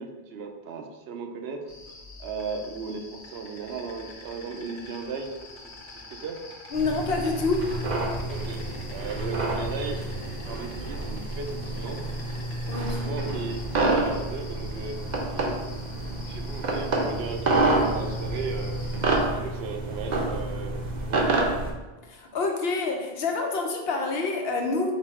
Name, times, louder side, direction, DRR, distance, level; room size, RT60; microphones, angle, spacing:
voice 1, 0.0-1.6 2.2-6.4 8.3-12.0 12.9-15.0 15.3-15.8 16.3-18.8 19.2-21.6, right 4 dB, 75° right, 3 dB, 0.8 m, -36 dB
Insect, 1.7-19.2, left 2 dB, 85° left, 1.2 m, -46 dB
voice 2, 6.7-7.7 12.7-13.1 22.0-24.9, left 3 dB, 70° left, 2 dB, 0.9 m, -27 dB
sound 1, 6.7-21.7, right 2 dB, 50° right, 0.7 m, -28 dB
4.1 x 2.7 x 4.3 m, 1.2 s
omnidirectional pair, 1.1 m